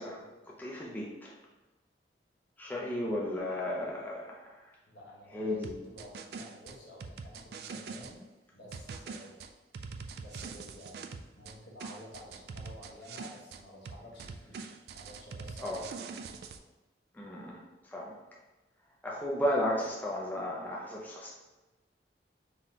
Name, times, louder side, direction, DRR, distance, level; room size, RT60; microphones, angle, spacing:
voice 1, 0.0-1.3 2.6-4.8 5.3-5.7 15.6-15.8 17.1-18.2 19.0-21.3, left 1 dB, 10° left, -4 dB, 0.5 m, -34 dB
voice 2, 4.9-9.4 10.2-16.3, left 1 dB, 80° left, -4 dB, 1.2 m, -51 dB
sound 1, 5.6-8.1 8.7-11.6 11.8-13.6 13.9-16.6, right 5 dB, 60° right, 0.3 m, -43 dB
4.0 x 2.8 x 3.6 m, 1.1 s
head